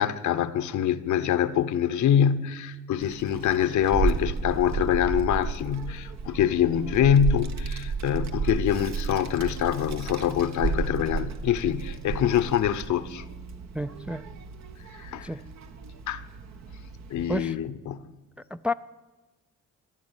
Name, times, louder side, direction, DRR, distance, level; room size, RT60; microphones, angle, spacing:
voice 1, 0.0-13.2 14.9-15.3 16.1-16.2 17.1-18.1, left 9 dB, 70° left, 0.9 m, -25 dB
Child speech kid speaking, 3.0-17.4, right 4 dB, 60° right, 1.4 m, -33 dB
voice 2, 13.7-14.3 15.2-15.4 17.3-17.6 18.5-18.7, left 1 dB, 5° right, 0.4 m, -30 dB
14.5 x 11.0 x 8.9 m
cardioid pair, 90°, 30 cm